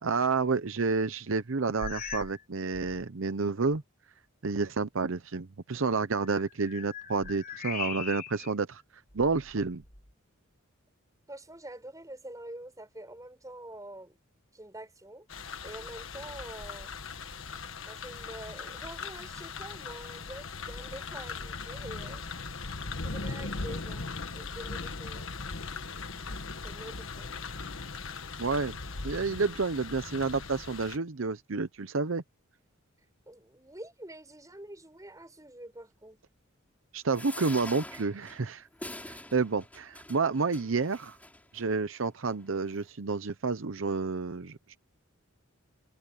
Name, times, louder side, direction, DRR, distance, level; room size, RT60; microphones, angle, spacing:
voice 1, 0.0-3.8 4.4-8.8 9.1-9.8 28.4-28.8 29.0-32.2 36.9-38.7 39.0-41.2 41.5-44.8, right 4 dB, 70° right, 0.8 m, -30 dB
sound 1, 1.8-2.4 2.7-3.1 3.7-3.8 6.2-8.5 9.1-10.1, left 6 dB, 45° left, 4.7 m, -40 dB
voice 2, 11.3-14.2 14.5-15.3 15.6-16.9 17.9-22.2 23.0-24.1 24.3-25.3 26.6-27.4 33.3-36.2, right 1 dB, 15° right, 6.6 m, -46 dB
sound 2, 15.3-31.0, left 4 dB, 70° left, 1.5 m, -39 dB
sound 3, 37.1-41.7 42.3-42.4 42.7-42.8, left 1 dB, 5° left, 7.2 m, -45 dB
head